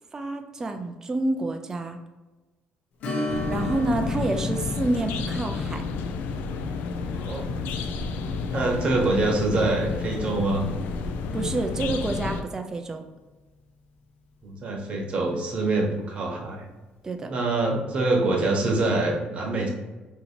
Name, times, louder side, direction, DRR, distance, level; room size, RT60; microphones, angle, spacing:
voice 1, 0.1-2.0 3.5-5.8 11.3-13.0 17.0-17.3, right 2 dB, 20° right, 5 dB, 0.3 m, -28 dB
Strum, 3.0-12.2 12.5-12.6 15.2-15.3 15.8-15.9, left 2 dB, 60° left, 0.7 m, -37 dB
sound 1, 3.3-12.4, left 4 dB, 80° left, 0.3 m, -31 dB
voice 2, 7.1-7.5 8.5-10.7 14.4-16.7 17.3-19.7, right 2 dB, 40° right, 0 dB, 1.0 m, -25 dB
2.8 x 2.7 x 4.2 m, 1.2 s
cardioid pair, 140°, 3 cm